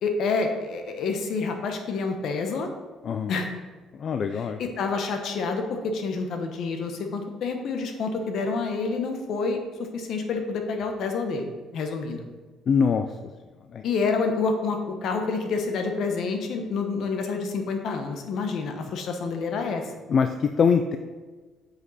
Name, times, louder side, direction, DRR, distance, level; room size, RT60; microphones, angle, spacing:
voice 1, 0.0-2.7 3.3-3.5 4.3-9.6 9.9-12.2 13.8-19.8, left 4 dB, 65° left, 5 dB, 1.1 m, -28 dB
voice 2, 4.0-4.6 12.7-13.1 13.7-13.8 20.1-21.0, left 6 dB, 45° left, 8 dB, 0.4 m, -23 dB
7.7 x 5.3 x 4.1 m, 1.3 s
cardioid pair, 120°, 0 cm